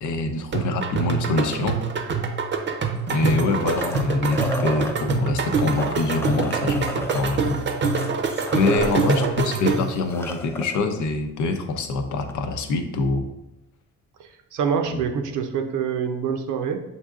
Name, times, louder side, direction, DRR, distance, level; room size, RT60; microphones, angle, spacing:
voice 1, 0.0-1.8 3.1-7.6 8.5-13.3 14.9-15.0, left 3 dB, 75° left, 5 dB, 0.7 m, -25 dB
sound 1, 0.5-10.0, right 4 dB, 40° right, 0.6 m, -25 dB
sound 2, 3.0-5.0 5.6-9.3 9.6-9.7 10.0-10.8 12.3-12.4, equal, 10° left, 0.4 m, -33 dB
voice 2, 8.7-9.4 14.5-16.8, right 7 dB, 85° right, 5 dB, 0.7 m, -26 dB
7.1 x 2.7 x 2.4 m, 0.89 s
cardioid pair, 90°, 30 cm